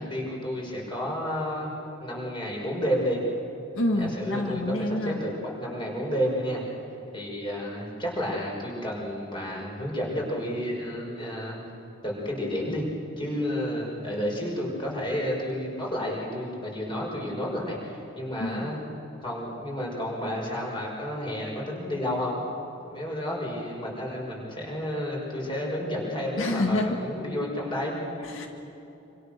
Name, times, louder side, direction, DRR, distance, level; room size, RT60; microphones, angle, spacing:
voice 1, 0.0-1.7 2.0-3.2 4.0-6.6 7.1-11.6 12.0-12.8 13.2-18.8 19.2-22.4 22.9-28.3, equal, 25° left, -2 dB, 5.8 m, -31 dB
voice 2, 3.7-5.2 18.4-18.7 26.4-27.0 28.2-28.5, left 1 dB, 90° left, 3 dB, 1.9 m, -27 dB
27.0 x 26.5 x 6.7 m, 2.8 s
head